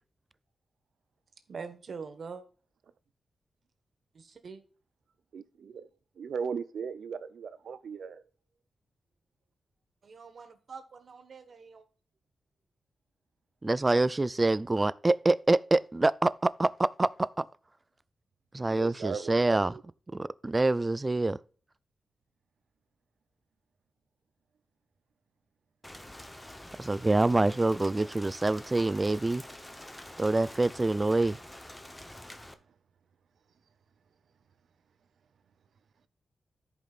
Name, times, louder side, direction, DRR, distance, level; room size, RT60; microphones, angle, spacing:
voice 1, 1.5-2.4 4.1-4.6 10.0-11.9, right 5 dB, 65° right, 1.3 m, -44 dB
voice 2, 5.3-5.9 6.2-8.3 18.7-19.8, right 6 dB, 80° right, 0.6 m, -38 dB
voice 3, 13.6-17.5 18.5-19.7 20.1-21.4 26.8-29.4 30.2-31.4, right 2 dB, 25° right, 0.4 m, -26 dB
Rain, 25.8-32.5, left 1 dB, 10° left, 0.9 m, -47 dB
14.5 x 5.4 x 2.5 m
cardioid pair, 85°, 0 cm